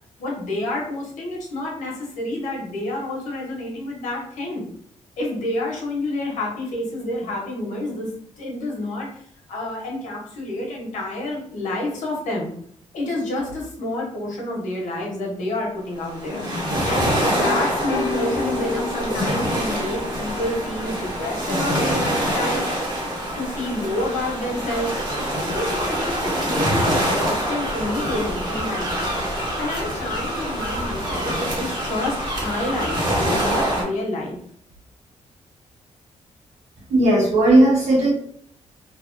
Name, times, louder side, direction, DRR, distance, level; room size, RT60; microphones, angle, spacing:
voice 1, 0.2-4.6 5.2-12.5 12.9-22.7 23.4-25.0 25.5-29.1 29.6-34.4, left 1 dB, 85° left, -2 dB, 1.1 m, -29 dB
sound 1, 16.0-33.8, equal, 35° right, 1.0 m, -25 dB
sound 2, 16.3-22.0, left 3 dB, 40° left, 0.6 m, -33 dB
voice 2, 36.9-38.1, right 1 dB, 65° right, -4 dB, 1.5 m, -16 dB
3.3 x 2.1 x 2.6 m, 0.65 s
cardioid pair, 100°, 13 cm